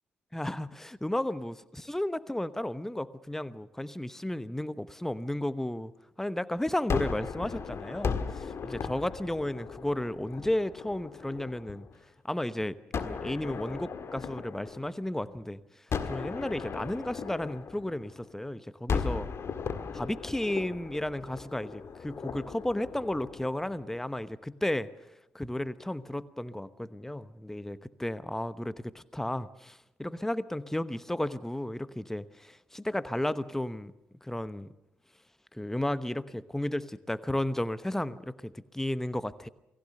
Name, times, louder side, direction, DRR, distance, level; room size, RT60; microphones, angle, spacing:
voice 1, 0.3-5.9 6.2-11.9 12.2-12.8 13.0-15.6 16.0-19.3 19.9-24.9 25.3-33.9 34.2-34.7 35.5-39.5, left 1 dB, 5° left, 16 dB, 1.0 m, -33 dB
Gunshot gunfire, 6.9-12.0 12.9-15.3 15.9-18.4 18.9-24.1, left 5 dB, 45° left, 1.6 m, -37 dB
28.5 x 19.0 x 6.7 m, 0.92 s
figure-of-eight pair, 40°, 6 cm